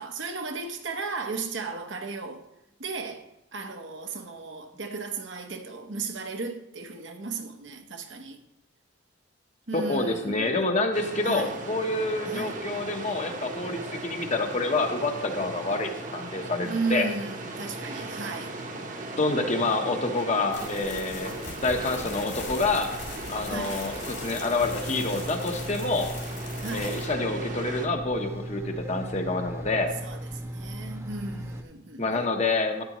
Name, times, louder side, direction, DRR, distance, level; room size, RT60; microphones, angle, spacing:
voice 1, 0.0-2.4 2.8-3.3 3.5-8.4 9.7-10.5 11.2-11.6 12.3-12.6 16.6-18.5 23.5-23.8 26.6-27.0 30.0-32.3, right 4 dB, 65° right, 1.0 m, -35 dB
voice 2, 9.7-17.1 19.2-22.9 23.3-26.1 26.7-29.9 32.0-32.8, left 2 dB, 35° left, 1.0 m, -27 dB
sound 1, 10.9-27.9, right 2 dB, 40° right, 1.0 m, -38 dB
sound 2, 20.5-27.1, left 4 dB, 60° left, 2.2 m, -41 dB
sound 3, 24.6-31.6, right 1 dB, 15° right, 0.7 m, -37 dB
12.5 x 9.6 x 3.0 m
head